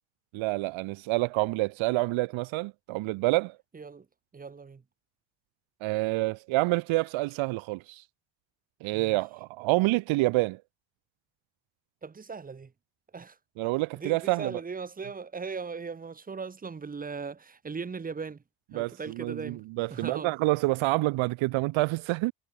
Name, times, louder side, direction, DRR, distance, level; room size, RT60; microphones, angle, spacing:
voice 1, 0.3-3.6 5.8-8.0 8.8-10.6 13.6-14.6 18.7-22.3, right 21 dB, 90° right, 2.8 m, -27 dB
voice 2, 3.7-4.1 4.3-4.8 8.9-9.2 12.0-12.7 13.1-13.4 14.0-18.4 18.7-19.7 19.9-20.3, right 5 dB, 20° right, 7.0 m, -38 dB
cardioid pair, 180°, 46 cm